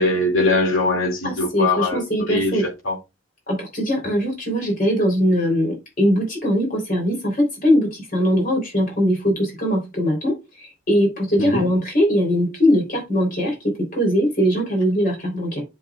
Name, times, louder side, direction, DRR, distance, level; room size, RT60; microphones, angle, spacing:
voice 1, 0.0-2.0 2.3-2.6 2.8-2.9 11.4-11.7, left 2 dB, 80° left, 2.4 m, -21 dB
voice 2, 1.2-2.7 3.5-15.6, equal, 40° left, 3.6 m, -21 dB
7.7 x 7.3 x 2.4 m
head